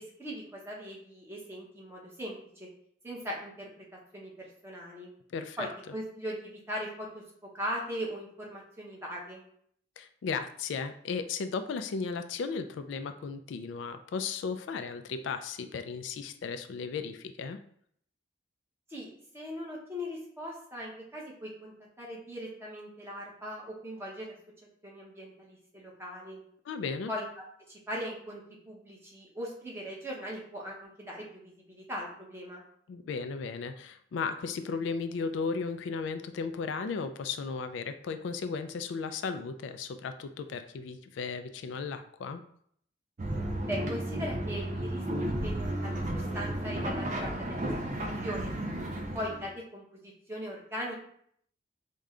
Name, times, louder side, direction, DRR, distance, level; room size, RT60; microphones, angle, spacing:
voice 1, 0.0-2.7 3.0-3.9 4.1-5.1 5.6-7.2 7.5-9.4 18.9-24.3 24.8-26.4 27.1-27.3 27.7-32.6 43.7-47.9 48.2-48.5 49.1-51.0, equal, 15° right, -3 dB, 0.9 m, -40 dB
voice 2, 5.3-5.7 10.0-17.6 26.7-27.1 32.9-42.4, left 5 dB, 75° left, 9 dB, 0.3 m, -35 dB
sound 1, 43.2-49.5, right 1 dB, 40° right, 0.5 m, -33 dB
4.7 x 2.2 x 3.7 m, 0.65 s
head